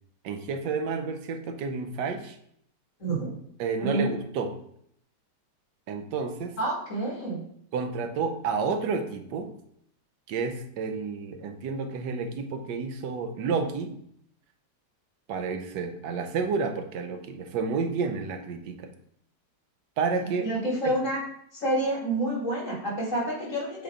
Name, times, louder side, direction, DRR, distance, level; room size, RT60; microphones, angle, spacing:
voice 1, 0.2-2.4 3.6-4.5 5.9-6.5 7.7-9.5 10.3-13.9 15.3-18.9 20.0-20.5 20.8-21.0, right 5 dB, 90° right, 6 dB, 1.3 m, -30 dB
voice 2, 3.0-3.4 3.8-4.1 6.6-7.4 20.4-21.2 21.5-23.8, right 1 dB, 45° left, -5 dB, 2.6 m, -28 dB
7.7 x 3.3 x 3.6 m, 0.69 s
omnidirectional pair, 1.8 m